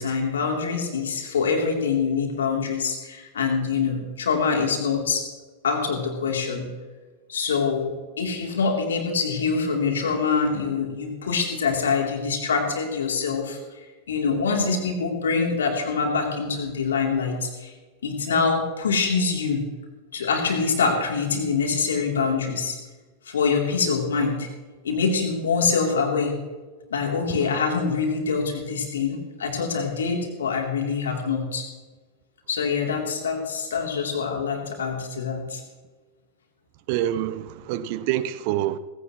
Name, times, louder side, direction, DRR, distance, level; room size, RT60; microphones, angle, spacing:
voice 1, 0.0-5.2 5.6-6.7 7.3-7.9 8.2-13.6 14.1-17.7 18.0-19.6 20.1-22.8 23.3-24.5 24.8-26.3 26.9-31.7 32.5-35.6, left 5 dB, 65° left, 3.1 m, -25 dB
voice 2, 36.9-38.8, right 12 dB, 45° right, 0.8 m, -26 dB
18.5 x 16.5 x 3.1 m
figure-of-eight pair, 90°, 0 cm